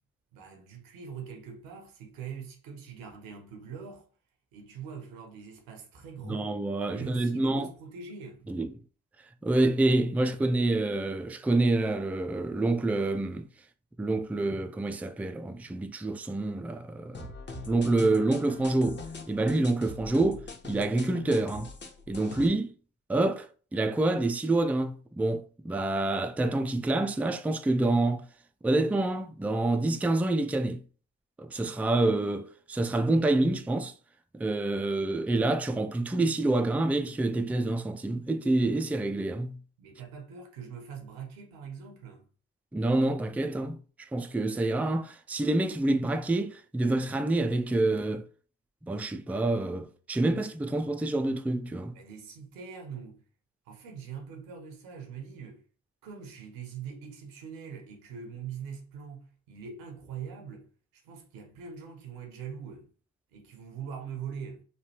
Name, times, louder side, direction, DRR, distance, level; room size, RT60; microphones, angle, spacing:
voice 1, 0.3-4.1 4.5-6.6 6.9-8.5 39.8-42.2 51.9-53.2 53.7-55.6 56.0-62.9 63.3-64.6, right 6 dB, 80° right, 0.9 m, -42 dB
voice 2, 6.2-7.7 8.5-8.7 9.4-13.5 14.0-17.3 17.7-21.7 22.1-22.7 23.1-28.3 28.6-30.8 31.4-33.9 34.3-39.6 42.7-48.3 48.8-51.9, right 2 dB, 5° right, 0.4 m, -27 dB
sound 1, 17.1-22.5, left 3 dB, 30° left, 1.0 m, -42 dB
3.2 x 2.3 x 2.8 m
hypercardioid pair, 45°, 34 cm